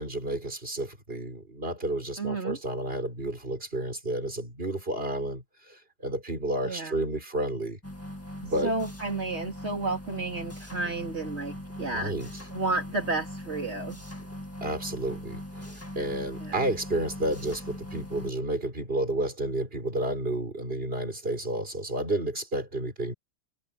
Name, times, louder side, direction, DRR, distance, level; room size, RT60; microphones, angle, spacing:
voice 1, 0.0-7.8 8.4-8.7 11.8-12.3 14.6-23.1, right 1 dB, 55° right, 5.1 m, -31 dB
voice 2, 2.2-2.6 6.6-6.9 8.6-12.1 12.5-14.0 16.4-16.6, right 3 dB, 75° right, 3.5 m, -31 dB
sound 1, 7.8-18.3, left 1 dB, 10° left, 2.1 m, -40 dB
omnidirectional pair, 1.2 m